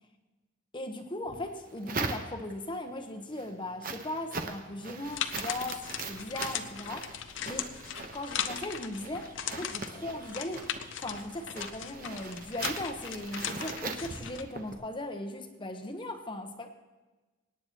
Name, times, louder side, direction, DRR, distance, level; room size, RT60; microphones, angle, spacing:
voice 1, 0.7-7.7 8.1-10.6 11.0-16.7, left 1 dB, 25° left, 6 dB, 1.0 m, -38 dB
sound 1, 1.3-2.7 3.2-14.8, right 4 dB, 45° right, 1.0 m, -41 dB
sound 2, 5.0-14.4, left 9 dB, 70° left, 0.6 m, -38 dB
24.5 x 9.7 x 3.0 m, 1.2 s
head